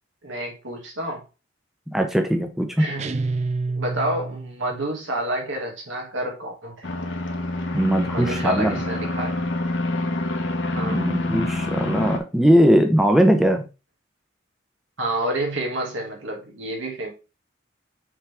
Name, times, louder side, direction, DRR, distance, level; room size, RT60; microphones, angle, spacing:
voice 1, 0.2-1.2 2.8-3.2 3.7-6.9 8.1-9.3 10.7-11.1 15.0-17.1, right 1 dB, 90° right, 2.4 m, -29 dB
voice 2, 1.9-2.8 7.7-8.8 10.7-13.7, equal, ahead, 0.7 m, -20 dB
sound 1, 3.0-4.7, right 3 dB, 35° right, 0.4 m, -28 dB
sound 2, 6.8-12.2, left 2 dB, 70° left, 1.2 m, -27 dB
5.8 x 4.5 x 3.5 m
head